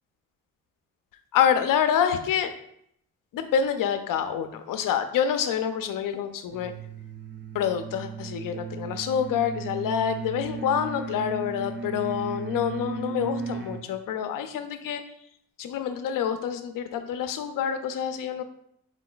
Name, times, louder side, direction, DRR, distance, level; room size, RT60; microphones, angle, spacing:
voice 1, 1.3-2.5 3.3-6.7 7.5-15.0 15.6-18.4, left 8 dB, 70° left, 9 dB, 0.6 m, -27 dB
sound 1, 6.5-13.9, right 5 dB, 30° right, 0.6 m, -36 dB
4.6 x 2.2 x 3.9 m, 0.71 s
cardioid pair, 75°, 34 cm